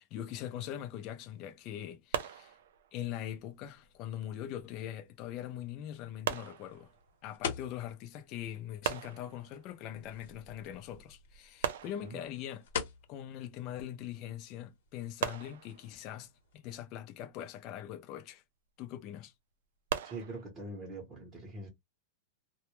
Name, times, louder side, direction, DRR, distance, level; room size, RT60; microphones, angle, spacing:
voice 1, 0.0-2.6 2.9-6.9 7.2-12.7 13.1-18.4 18.8-19.3, left 11 dB, 35° left, 0.3 m, -42 dB
sound 1, 2.1-3.1 6.2-7.3 8.8-9.8 11.6-12.6 15.2-16.2 19.9-20.4, right 9 dB, 75° right, 0.4 m, -38 dB
sound 2, 3.3-16.6, left 7 dB, 70° left, 0.8 m, -47 dB
voice 2, 20.0-21.7, right 2 dB, 15° right, 0.7 m, -43 dB
2.1 x 2.1 x 2.9 m
supercardioid pair, 155°, 0 cm